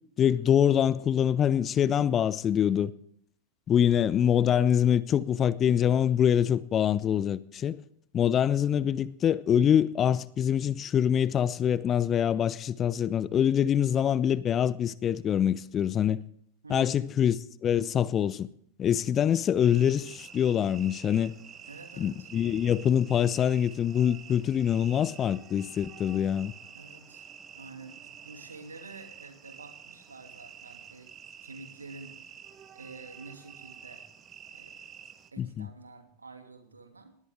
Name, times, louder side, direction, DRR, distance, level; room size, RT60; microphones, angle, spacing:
voice 1, 0.2-2.9 3.7-7.8 8.1-16.2 16.7-17.4 17.6-18.5 18.8-21.3 22.0-26.5 35.4-35.7, left 9 dB, 25° left, 0.7 m, -25 dB
voice 2, 16.6-17.0 21.7-22.3 26.7-27.3 27.5-31.1 31.4-32.3 32.7-34.1 34.5-34.8 35.3-37.2, right 3 dB, 75° right, 2.7 m, -48 dB
sound 1, 19.6-35.3, right 7 dB, 25° right, 1.5 m, -49 dB
19.5 x 18.5 x 3.6 m
figure-of-eight pair, 90°, 0 cm